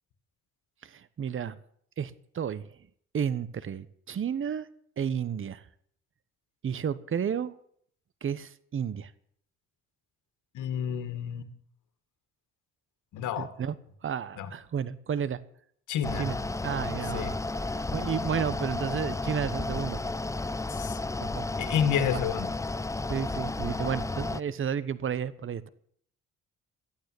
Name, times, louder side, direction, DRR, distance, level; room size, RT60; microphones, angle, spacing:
voice 1, 0.8-1.6 2.0-2.8 3.1-4.7 5.0-5.7 6.6-7.5 8.2-9.1 13.4-13.7 14.0-15.4 16.1-16.4 16.6-17.4 17.7-20.0 21.2-21.5 22.0-22.2 23.1-25.7, right 8 dB, 45° right, 1.1 m, -32 dB
voice 2, 10.5-11.4 13.1-13.5 14.4-14.5 15.9-16.3 17.1-17.3 20.7-21.0 21.6-22.5, left 8 dB, 80° left, 2.1 m, -29 dB
Mechanical fan, 16.0-24.4, left 2 dB, 10° left, 0.6 m, -32 dB
14.5 x 9.3 x 9.8 m
cardioid pair, 90°, 30 cm